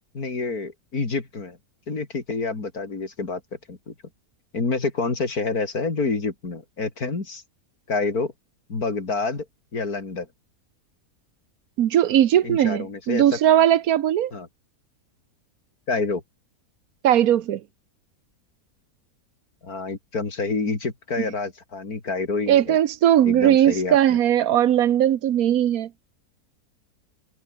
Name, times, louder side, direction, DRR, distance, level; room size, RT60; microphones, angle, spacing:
voice 1, 0.1-1.6 1.9-3.4 3.7-3.9 4.5-7.4 7.9-8.3 8.7-9.5 9.7-10.3 12.4-13.2 14.3-14.5 15.9-16.2 19.6-22.8 23.2-24.2, left 4 dB, 75° left, 4.0 m, -28 dB
voice 2, 11.8-14.3 17.0-17.6 21.2-21.3 22.5-25.9, right 11 dB, 75° right, 1.3 m, -19 dB
omnidirectional pair, 1.6 m